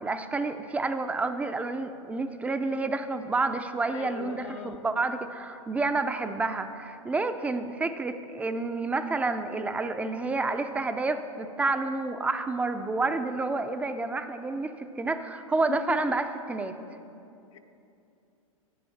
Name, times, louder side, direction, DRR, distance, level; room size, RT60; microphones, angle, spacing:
voice 1, 0.0-16.8, right 3 dB, 5° right, 9 dB, 0.4 m, -29 dB
voice 2, 3.9-4.9 15.7-16.2 17.5-17.6, left 9 dB, 65° left, 6 dB, 0.7 m, -39 dB
8.5 x 7.1 x 7.1 m, 2.7 s
hypercardioid pair, 120°, 18 cm